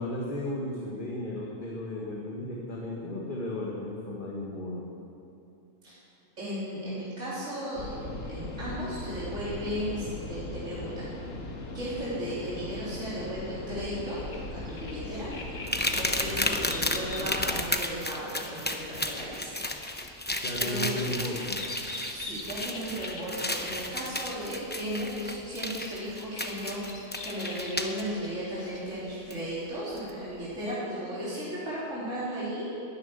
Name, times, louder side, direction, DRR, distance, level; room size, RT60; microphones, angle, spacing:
voice 1, 0.0-4.8 16.2-16.7 20.4-21.6, left 1 dB, 35° left, -3 dB, 1.8 m, -35 dB
voice 2, 6.4-8.0 8.3-11.4 11.7-14.2 14.5-15.3 16.0-19.6 20.5-21.1 22.1-32.7, equal, 50° right, -9 dB, 3.9 m, -35 dB
sound 1, 7.8-17.6, left 2 dB, 60° left, 1.9 m, -39 dB
sound 2, 13.8-29.0, left 2 dB, 75° left, 2.2 m, -45 dB
sound 3, 15.7-28.0 29.3-29.4 30.0-30.1, left 1 dB, 10° left, 0.6 m, -33 dB
13.5 x 11.0 x 9.6 m, 2.7 s
omnidirectional pair, 1.6 m